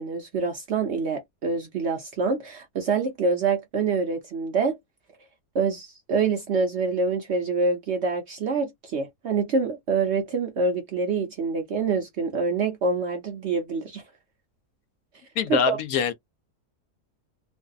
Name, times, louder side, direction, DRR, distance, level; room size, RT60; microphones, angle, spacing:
voice 1, 0.0-4.8 5.5-14.0 15.5-15.8, right 4 dB, 60° right, 0.7 m, -26 dB
voice 2, 15.4-16.1, left 6 dB, 70° left, 0.9 m, -24 dB
2.6 x 2.5 x 2.3 m
omnidirectional pair, 1.7 m